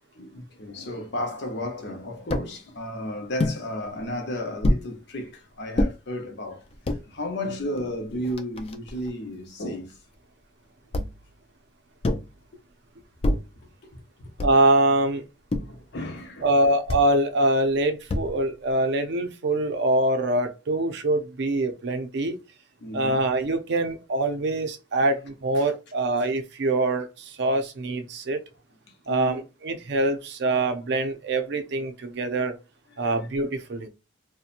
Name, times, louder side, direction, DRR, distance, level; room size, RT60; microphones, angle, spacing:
voice 1, 0.0-6.7 7.0-10.0 14.2-14.3 15.5-16.5 22.8-23.2 25.5-25.7 29.1-29.4 32.9-33.1, left 1 dB, 65° left, 0.7 m, -33 dB
sound 1, 2.3-2.5 3.4-3.6 4.6-4.9 5.8-5.9 6.7-7.0 7.8-7.9 8.1-9.1 10.9-11.3 12.0-12.4 13.2-13.6 14.4-14.7 15.5-15.8 16.9-17.1 18.1-18.5, left 1 dB, 30° left, 0.3 m, -26 dB
voice 2, 14.4-15.2 16.4-22.4 22.9-28.4 29.1-32.6 33.0-33.9, right 2 dB, 65° right, 0.5 m, -24 dB
2.7 x 2.1 x 2.5 m
head